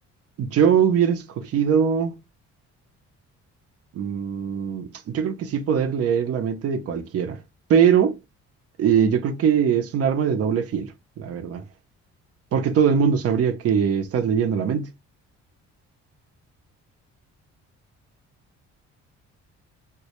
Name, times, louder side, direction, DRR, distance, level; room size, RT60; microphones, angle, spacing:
voice 1, 0.4-2.2 3.9-7.4 7.7-8.2 8.8-11.6 12.5-14.9, right 7 dB, 55° right, 0.5 m, -21 dB
2.1 x 2.1 x 2.8 m
cardioid pair, 90°, 30 cm